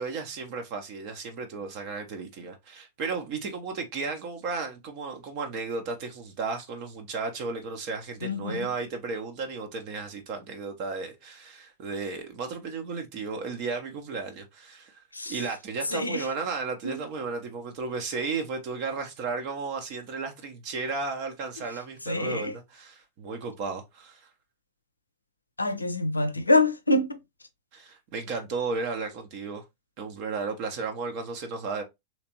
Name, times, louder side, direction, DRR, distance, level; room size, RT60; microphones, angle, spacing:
voice 1, 0.0-24.3 27.7-29.6 30.0-31.8, right 4 dB, 45° right, 0.6 m, -34 dB
voice 2, 8.2-8.6 15.1-15.3 15.9-16.2 16.8-16.9 22.1-22.5 25.6-27.2, left 2 dB, 85° left, 0.5 m, -25 dB
3.3 x 2.9 x 2.8 m
figure-of-eight pair, 90°, 0 cm